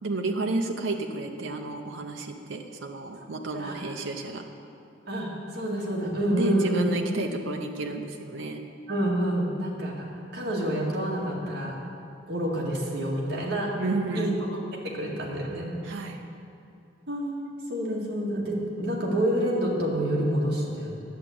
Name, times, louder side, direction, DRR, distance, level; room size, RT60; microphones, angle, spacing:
voice 1, 0.0-4.4 6.3-8.6 13.8-14.4 15.8-16.2, right 2 dB, 75° right, 3 dB, 0.8 m, -31 dB
voice 2, 5.1-6.8 8.9-11.8 12.3-13.8 14.1-14.5 14.8-15.7 17.1-21.0, right 1 dB, 55° right, -3 dB, 2.1 m, -28 dB
10.5 x 8.4 x 7.8 m, 2.6 s
head